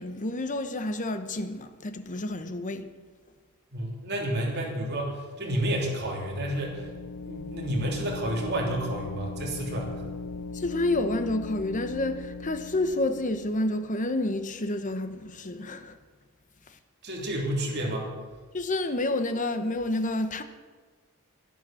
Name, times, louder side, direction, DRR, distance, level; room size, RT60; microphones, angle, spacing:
voice 1, 0.0-2.9 10.5-16.0 18.5-20.4, left 2 dB, 35° left, 0.9 m, -29 dB
voice 2, 3.7-6.9 7.2-9.9 17.0-18.1, right 1 dB, 50° right, 3.2 m, -30 dB
sound 1, 5.9-13.6, left 3 dB, 80° left, 0.7 m, -39 dB
11.5 x 10.5 x 7.5 m
head